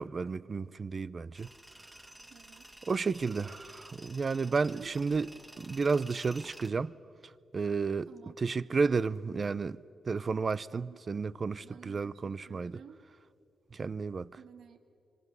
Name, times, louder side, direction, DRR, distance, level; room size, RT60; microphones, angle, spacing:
voice 1, 0.0-1.5 2.9-5.3 5.6-6.9 7.5-9.8 10.1-12.8 13.7-14.3, right 4 dB, 40° right, 0.6 m, -32 dB
Tools, 1.3-6.7, right 1 dB, 10° right, 2.0 m, -52 dB
voice 2, 2.3-2.7 4.7-5.0 8.1-8.4 10.7-11.0 11.6-13.0 14.4-14.8, right 7 dB, 80° right, 1.7 m, -52 dB
27.5 x 25.0 x 8.2 m
cardioid pair, 90°, 0 cm